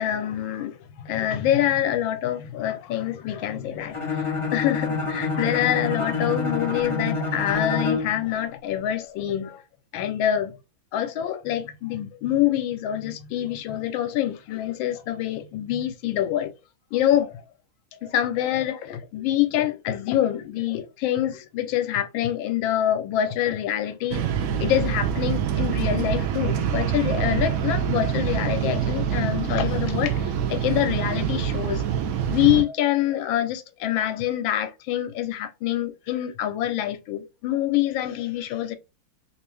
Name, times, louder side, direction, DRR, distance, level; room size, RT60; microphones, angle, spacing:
voice 1, 0.0-9.6 9.9-10.6 10.9-16.5 16.9-17.4 18.0-24.2 24.6-32.0 32.3-38.8, left 11 dB, 85° left, 1.4 m, -26 dB
Bowed string instrument, 3.9-8.2, left 4 dB, 25° left, 0.6 m, -27 dB
sound 1, 24.1-32.6, right 8 dB, 80° right, 0.8 m, -25 dB
3.2 x 2.6 x 3.2 m
omnidirectional pair, 2.1 m